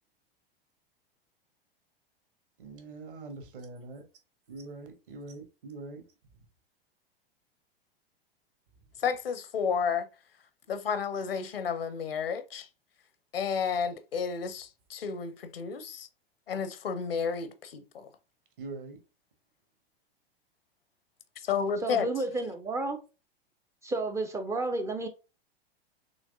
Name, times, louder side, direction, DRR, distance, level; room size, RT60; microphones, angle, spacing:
voice 1, 2.6-4.0 4.5-6.0 18.6-19.0, right 3 dB, 60° right, 1.6 m, -43 dB
voice 2, 9.0-10.1 10.7-12.7 13.3-16.1 16.5-18.1 21.4-22.1, left 6 dB, 70° left, 0.8 m, -31 dB
voice 3, 21.8-23.0 23.8-25.1, right 2 dB, 10° right, 0.4 m, -31 dB
6.2 x 3.1 x 2.6 m
figure-of-eight pair, 95°, 30 cm